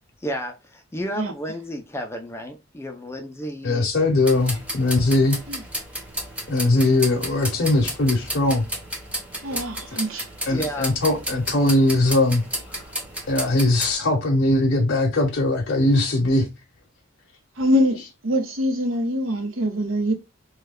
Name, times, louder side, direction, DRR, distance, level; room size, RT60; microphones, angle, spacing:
voice 1, 0.2-3.9 10.5-10.9, equal, 10° left, 0.4 m, -32 dB
voice 2, 3.6-5.4 6.5-8.6 10.5-12.4 13.3-16.5, left 2 dB, 55° left, 0.7 m, -20 dB
sound 1, 4.3-13.9, equal, 5° right, 0.8 m, -33 dB
voice 3, 9.4-10.5 17.6-18.0 18.2-20.1, equal, 70° right, 0.9 m, -24 dB
3.1 x 2.2 x 3.4 m
head